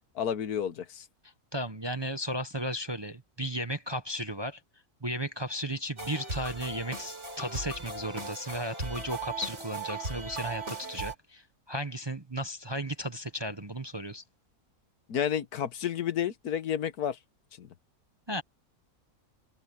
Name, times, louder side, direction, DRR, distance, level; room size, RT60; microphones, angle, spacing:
voice 1, 0.1-1.0 15.1-17.2 17.6-17.7, left 9 dB, 80° left, 1.6 m, -31 dB
voice 2, 1.5-4.6 5.0-14.2 18.3-18.4, equal, 20° right, 0.8 m, -35 dB
sound 1, 6.0-11.2, right 3 dB, 45° right, 5.3 m, -38 dB
omnidirectional pair, 1.6 m